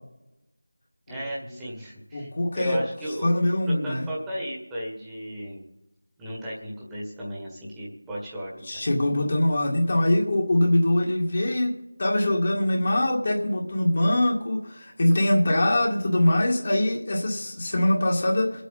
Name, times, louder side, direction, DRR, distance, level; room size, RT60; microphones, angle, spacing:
voice 1, 1.1-3.3 3.6-5.6 6.2-8.9, equal, 5° right, -6 dB, 1.7 m, -35 dB
voice 2, 2.1-2.8 3.2-4.1 8.6-11.7 12.0-18.6, left 1 dB, 35° left, -2 dB, 2.0 m, -23 dB
23.5 x 8.3 x 4.1 m, 0.90 s
figure-of-eight pair, 175°, 0 cm